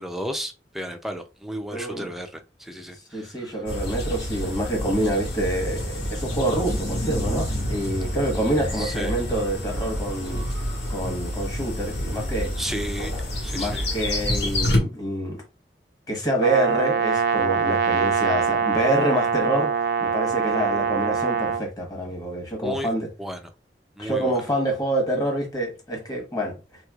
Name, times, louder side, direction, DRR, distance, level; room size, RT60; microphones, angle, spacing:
voice 1, 0.0-3.6 8.7-9.1 12.6-13.9 22.6-22.9 23.2-23.4 24.0-24.3, equal, ahead, 0.4 m, -33 dB
voice 2, 1.7-2.1 3.1-10.5 10.9-12.5 13.5-15.4 16.1-19.7 20.0-23.1 24.0-26.5, right 1 dB, 20° left, 1.1 m, -27 dB
sound 1, 3.7-14.8, left 1 dB, 80° left, 1.6 m, -28 dB
Brass instrument, 16.4-21.6, right 6 dB, 65° right, 0.4 m, -23 dB
3.3 x 3.0 x 2.3 m
head